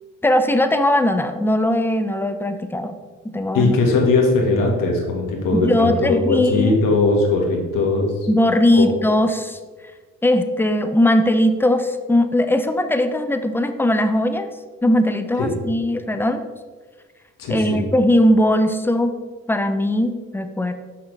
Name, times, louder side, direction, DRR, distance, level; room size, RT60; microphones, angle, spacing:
voice 1, 0.2-2.9 3.2-3.7 5.5-6.8 8.3-9.6 10.2-14.5 14.8-16.4 17.5-19.2 19.5-20.7, left 1 dB, 5° left, 9 dB, 0.5 m, -19 dB
voice 2, 3.5-8.1 8.7-8.9 15.4-15.5 17.4-17.8, left 3 dB, 70° left, 0 dB, 1.6 m, -19 dB
5.7 x 5.6 x 3.3 m, 1.4 s
supercardioid pair, 60°, 34 cm